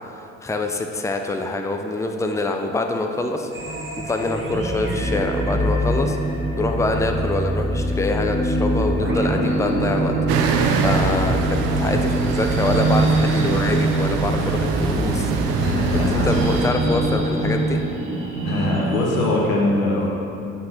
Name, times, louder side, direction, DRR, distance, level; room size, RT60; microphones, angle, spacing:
voice 1, 0.4-3.5 4.0-6.2 6.5-10.1 10.8-17.8, left 2 dB, 5° left, 4 dB, 0.7 m, -25 dB
sound 1, 3.5-19.3, right 1 dB, 30° right, 1.9 m, -23 dB
sound 2, 10.3-16.7, right 5 dB, 65° right, 0.8 m, -24 dB
voice 2, 15.6-16.4 18.4-20.1, left 2 dB, 85° left, -2 dB, 1.4 m, -22 dB
7.6 x 5.9 x 5.9 m, 2.6 s
figure-of-eight pair, 50°, 40 cm